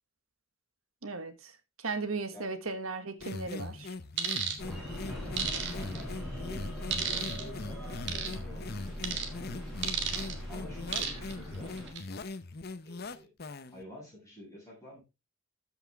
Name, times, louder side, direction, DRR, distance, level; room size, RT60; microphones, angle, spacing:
voice 1, 1.0-1.5 1.8-3.9, right 3 dB, 85° right, 1.5 m, -36 dB
sound 1, 3.2-13.8, left 3 dB, 50° left, 0.8 m, -41 dB
sound 2, 4.2-4.6 5.4-6.0 6.9-7.4 8.1-8.3 9.0-9.3 9.8-10.3 10.9-11.3 11.8-12.0, right 7 dB, 55° right, 1.9 m, -32 dB
sound 3, 4.6-11.9, left 1 dB, ahead, 6.6 m, -40 dB
voice 2, 5.5-9.7 10.5-11.8 12.8-13.3 13.7-15.0, left 1 dB, 15° left, 6.8 m, -50 dB
13.5 x 6.0 x 3.4 m
head